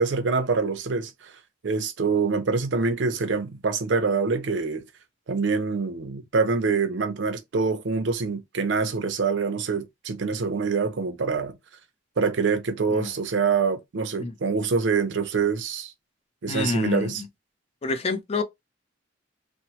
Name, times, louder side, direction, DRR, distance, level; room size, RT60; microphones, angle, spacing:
voice 1, 0.0-1.3 1.6-4.8 5.3-11.6 12.2-15.9 16.4-17.2, right 4 dB, 75° right, 0.5 m, -25 dB
voice 2, 16.5-17.1 17.8-18.4, left 3 dB, 35° left, 0.4 m, -28 dB
2.9 x 2.0 x 2.8 m
head